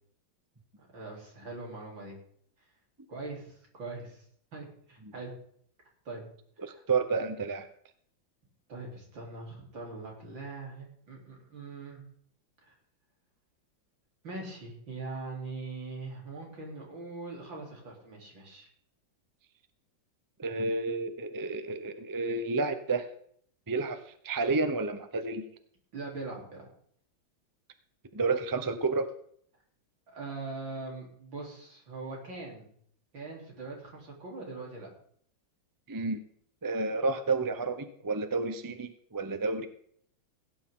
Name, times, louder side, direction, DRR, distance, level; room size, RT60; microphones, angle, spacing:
voice 1, 0.8-2.2 3.1-4.2 4.5-5.3 6.1-6.2 6.6-6.8 8.7-12.0 12.6-12.7 14.2-18.7 25.9-26.7 30.1-32.7 33.1-34.9, right 3 dB, 80° right, -2 dB, 4.5 m, -42 dB
voice 2, 6.6-7.7 20.4-23.1 23.7-25.4 28.1-29.1 35.9-36.2 36.6-39.7, right 3 dB, 20° right, 9 dB, 0.5 m, -30 dB
17.0 x 9.8 x 3.8 m, 0.62 s
omnidirectional pair, 2.0 m